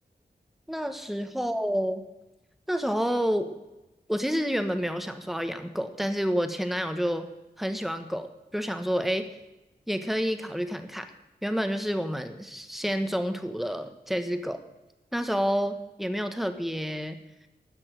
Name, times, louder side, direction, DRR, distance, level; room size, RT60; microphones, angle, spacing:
voice 1, 0.7-2.1 2.7-3.6 4.1-7.3 7.6-9.3 9.9-11.1 11.4-14.6 15.1-17.2, equal, ahead, 8 dB, 1.4 m, -29 dB
12.5 x 6.2 x 9.1 m, 1.0 s
wide cardioid pair, 55°, 17 cm